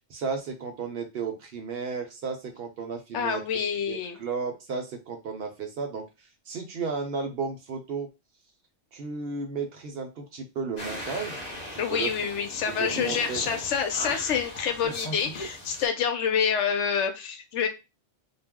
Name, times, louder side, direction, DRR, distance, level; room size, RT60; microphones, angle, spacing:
voice 1, 0.1-3.4 3.9-8.1 8.9-11.4 11.7-12.1 12.7-13.4, right 5 dB, 60° right, 4 dB, 0.7 m, -34 dB
voice 2, 3.1-4.2 11.8-17.7, left 7 dB, 75° left, 6 dB, 0.9 m, -27 dB
sound 1, 10.8-15.9, left 1 dB, 45° left, 0.6 m, -38 dB
2.3 x 2.0 x 3.4 m, 0.25 s
omnidirectional pair, 1.3 m